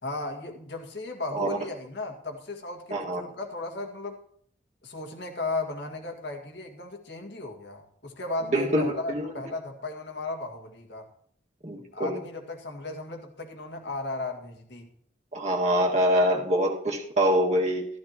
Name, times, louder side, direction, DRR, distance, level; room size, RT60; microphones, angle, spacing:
voice 1, 0.0-4.2 4.8-11.1 11.8-14.9, left 2 dB, 80° left, 1.9 m, -35 dB
voice 2, 2.9-3.3 8.5-9.3 11.6-12.2 15.3-17.9, equal, 40° right, 1.8 m, -25 dB
14.0 x 13.5 x 2.9 m
head